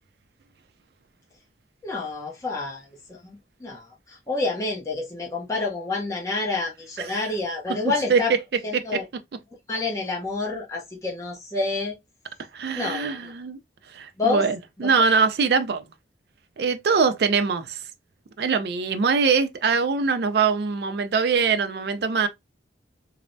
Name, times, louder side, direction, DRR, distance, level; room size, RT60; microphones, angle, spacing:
voice 1, 1.8-8.3 8.6-9.0 9.7-12.0 12.7-13.3 14.2-14.5 14.8-14.9, left 3 dB, 20° left, 0.6 m, -28 dB
voice 2, 12.5-13.6 13.9-15.8 16.6-17.8 18.4-22.3, right 5 dB, 65° right, 0.4 m, -23 dB
3.2 x 2.0 x 2.5 m
head